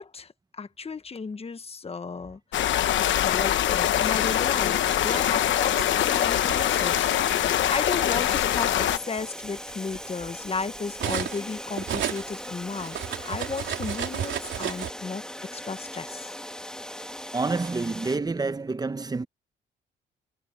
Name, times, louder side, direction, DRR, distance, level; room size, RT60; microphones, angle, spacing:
voice 1, 0.0-2.4 3.2-7.1 7.6-13.0 13.2-15.2 15.5-16.3, left 4 dB, 30° left, 1.4 m, -34 dB
sound 1, 2.5-9.0, left 11 dB, 70° left, 1.1 m, -23 dB
sound 2, 3.7-18.2, left 1 dB, 5° left, 1.6 m, -39 dB
Cutlery silverware, 5.4-6.7 7.6-7.8 8.2-11.5 11.8-14.9, right 10 dB, 70° right, 3.6 m, -33 dB
voice 2, 17.3-19.3, right 3 dB, 20° right, 1.0 m, -28 dB
cardioid pair, 90°, 20 cm